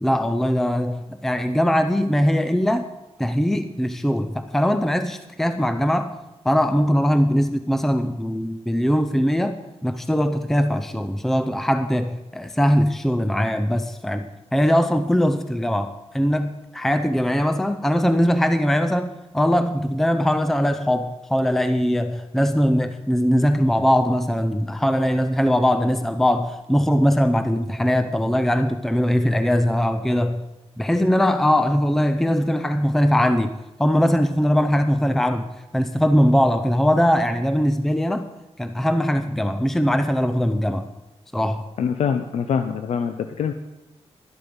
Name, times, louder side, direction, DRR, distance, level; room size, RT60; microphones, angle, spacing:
voice 1, 0.0-2.9 3.2-6.2 6.4-14.3 14.5-30.4 30.8-35.5 35.7-38.3 38.6-40.9 41.3-41.7, equal, 5° left, 9 dB, 0.5 m, -21 dB
voice 2, 41.8-43.5, left 7 dB, 85° left, 8 dB, 0.7 m, -24 dB
12.5 x 11.5 x 5.2 m, 1.0 s
wide cardioid pair, 150°, 11 cm